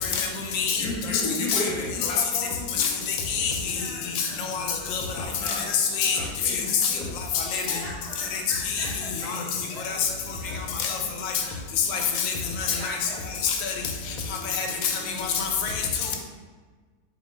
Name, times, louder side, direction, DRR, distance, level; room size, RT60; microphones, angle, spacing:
voice 1, 0.0-0.8 1.5-1.6 2.0-2.1 2.8-3.7 4.2-5.0 5.7-6.2 6.8-6.9 7.3-7.8 8.3-8.4 8.7-8.9 9.3-9.4 9.9-10.0 10.7-11.3 11.9-13.0 13.4-13.7 14.4-14.9 15.2-15.8, left 6 dB, 80° left, 1.3 m, -27 dB
voice 2, 0.8-3.0 5.1-5.7 6.1-7.1, left 2 dB, 60° left, 1.1 m, -33 dB
voice 3, 3.7-4.4 4.8-5.2 7.6-11.6 11.9-12.2 12.6-13.2, equal, 75° right, 2.0 m, -42 dB
4.4 x 2.8 x 3.2 m
omnidirectional pair, 2.1 m